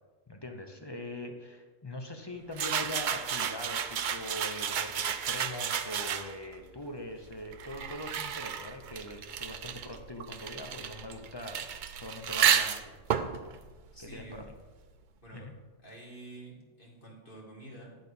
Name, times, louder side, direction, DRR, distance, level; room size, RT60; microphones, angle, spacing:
voice 1, 0.3-13.0 14.0-14.5 15.3-15.5, left 1 dB, 25° left, 4 dB, 0.6 m, -42 dB
sound 1, 2.5-6.5 7.3-14.7, right 8 dB, 55° right, 0.6 m, -32 dB
voice 2, 13.9-14.4 15.2-15.5 15.8-18.0, right 2 dB, 45° left, -3 dB, 2.2 m, -48 dB
10.5 x 4.1 x 6.8 m, 1.3 s
omnidirectional pair, 1.2 m